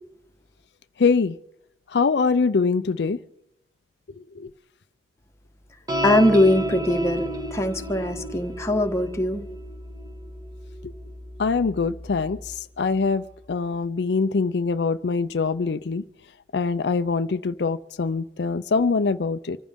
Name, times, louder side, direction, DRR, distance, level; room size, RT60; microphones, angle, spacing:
voice 1, 1.0-1.4 1.9-3.2 4.2-4.5 10.8-10.9 11.4-16.0 16.5-19.6, left 4 dB, 70° left, 0.5 m, -24 dB
sound 1, 5.9-12.5, right 1 dB, 20° right, 1.7 m, -32 dB
voice 2, 6.0-9.4, left 1 dB, 15° left, 1.3 m, -21 dB
25.5 x 14.5 x 3.6 m
head